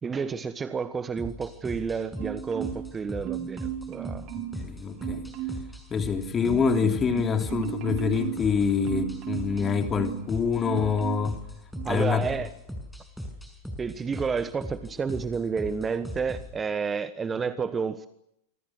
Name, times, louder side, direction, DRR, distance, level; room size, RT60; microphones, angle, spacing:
voice 1, 0.0-4.3 11.8-12.5 13.8-18.1, right 5 dB, 15° right, 1.2 m, -30 dB
sound 1, 1.2-16.5, equal, ahead, 6.5 m, -40 dB
Marimba xylophone, 2.2-3.0 3.2-4.7 5.0-5.7 6.1-10.3 10.6-11.4 11.7-12.0, right 12 dB, 40° right, 3.1 m, -35 dB
voice 2, 4.5-5.2 5.9-11.4 11.9-12.2, left 6 dB, 20° left, 3.1 m, -26 dB
26.5 x 25.5 x 6.3 m
figure-of-eight pair, 90°, 0 cm